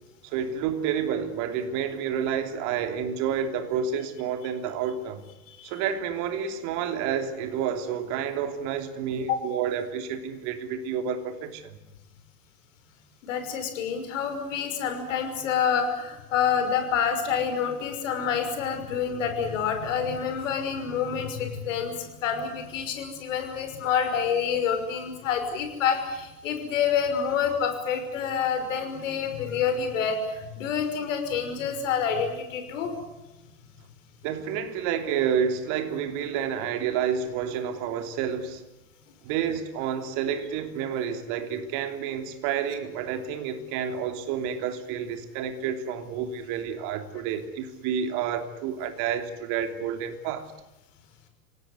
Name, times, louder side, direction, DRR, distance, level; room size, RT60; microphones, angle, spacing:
voice 1, 0.2-5.2 5.6-11.8 34.2-38.6 39.2-50.5, right 8 dB, 40° right, 3.2 m, -29 dB
voice 2, 13.2-32.9, left 7 dB, 55° left, 6.0 m, -27 dB
26.5 x 18.5 x 9.7 m
figure-of-eight pair, 105°, 45 cm